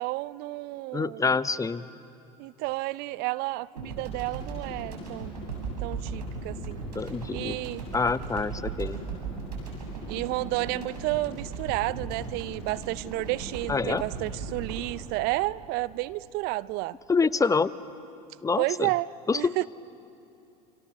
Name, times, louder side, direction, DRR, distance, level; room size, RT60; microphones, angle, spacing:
voice 1, 0.0-1.2 2.4-5.3 5.8-6.8 7.3-7.8 10.1-17.0 18.6-19.6, right 19 dB, 50° right, 18 dB, 0.6 m, -31 dB
voice 2, 0.9-1.9 6.9-7.6 7.9-9.0 13.7-14.0 17.1-17.7 18.4-18.9 19.3-19.7, left 4 dB, 15° left, 16 dB, 0.8 m, -26 dB
sound 1, 3.8-16.2, right 4 dB, 85° right, 7.6 m, -37 dB
29.0 x 27.5 x 6.8 m, 2.7 s
hypercardioid pair, 80°, 21 cm